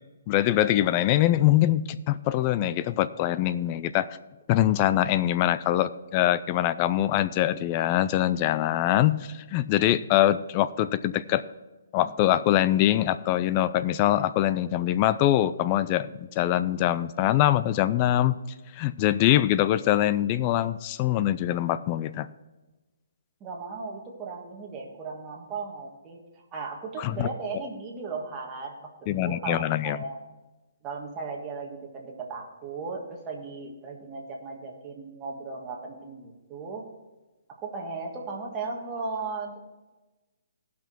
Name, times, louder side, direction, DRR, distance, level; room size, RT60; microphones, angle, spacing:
voice 1, 0.3-4.1 4.5-11.4 11.9-18.4 18.8-22.3 27.0-27.3 29.1-30.0, left 13 dB, 25° left, 15 dB, 0.4 m, -23 dB
voice 2, 23.4-26.2 26.5-28.9 29.2-30.2 30.8-36.9 37.5-39.6, right 4 dB, 15° right, -1 dB, 1.6 m, -36 dB
16.5 x 6.0 x 4.5 m, 1.1 s
hypercardioid pair, 165°, 0 cm